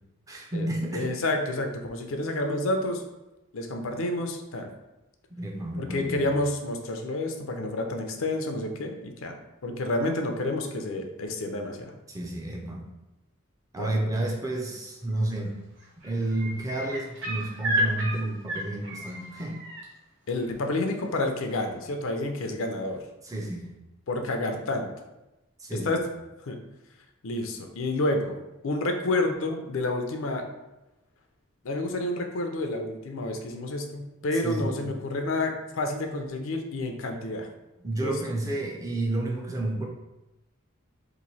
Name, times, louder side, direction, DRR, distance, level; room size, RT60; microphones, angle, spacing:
voice 1, 0.3-1.1 5.3-6.3 12.1-12.9 13.7-15.6 16.0-19.6 23.2-23.7 25.6-26.0 34.4-35.0 37.8-39.9, right 1 dB, 15° right, 0 dB, 0.4 m, -31 dB
voice 2, 0.9-3.0 3.5-4.7 5.8-9.3 9.6-11.9 13.8-13.9 20.3-23.0 24.1-24.9 25.7-26.0 26.5-26.6 27.2-28.4 28.6-30.4 31.6-37.5 38.0-38.2, left 2 dB, 70° left, 4 dB, 0.5 m, -29 dB
sound 1, 15.1-15.5 15.8-19.8 21.5-21.6, equal, 60° right, 0.9 m, -32 dB
3.0 x 2.6 x 4.0 m, 0.98 s
head